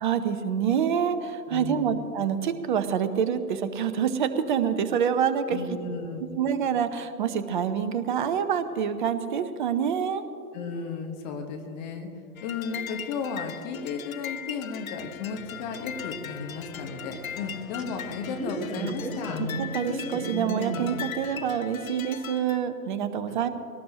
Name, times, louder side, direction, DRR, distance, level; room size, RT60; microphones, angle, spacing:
voice 1, 0.0-5.6 6.4-10.2 19.6-23.5, right 8 dB, 30° right, 11 dB, 0.8 m, -26 dB
voice 2, 1.5-2.0 5.5-6.4 10.5-12.1 12.4-19.4 23.3-23.4, left 5 dB, 25° left, 4 dB, 1.3 m, -34 dB
sound 1, 12.4-22.6, left 9 dB, 60° left, 0.7 m, -40 dB
sound 2, 15.3-21.4, right 1 dB, ahead, 3.0 m, -36 dB
23.0 x 18.5 x 3.0 m, 2.7 s
figure-of-eight pair, 130°, 48 cm